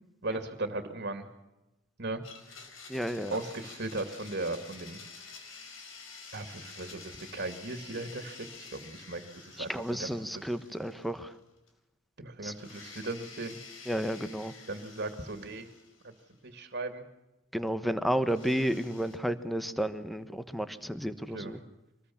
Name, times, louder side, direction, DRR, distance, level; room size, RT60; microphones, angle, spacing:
voice 1, 0.2-1.3 2.0-2.2 3.3-5.0 6.3-10.1 10.3-10.4 12.2-13.6 14.7-15.7 16.0-16.1 16.4-17.0 21.3-21.5, right 2 dB, 55° right, 7 dB, 2.5 m, -37 dB
Domestic sounds home sounds, 2.2-11.4 11.7-11.8 12.5-16.5 18.3-19.2, left 5 dB, 80° left, 4.5 m, -50 dB
voice 2, 2.9-3.4 9.6-11.3 12.4-12.5 13.9-14.5 17.5-21.6, equal, ahead, 11 dB, 1.2 m, -32 dB
25.0 x 20.5 x 7.2 m, 0.98 s
head